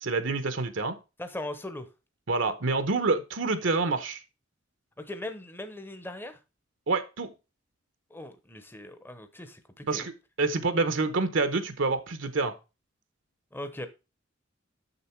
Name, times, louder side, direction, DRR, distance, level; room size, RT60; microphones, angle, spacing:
voice 1, 0.0-1.0 2.3-4.2 6.9-7.3 9.8-10.1 10.4-12.5, right 3 dB, 65° right, 10 dB, 0.9 m, -27 dB
voice 2, 1.2-1.9 5.0-6.4 8.1-10.1 13.5-13.9, left 1 dB, 10° left, 9 dB, 0.9 m, -39 dB
6.9 x 6.7 x 4.4 m, 0.28 s
head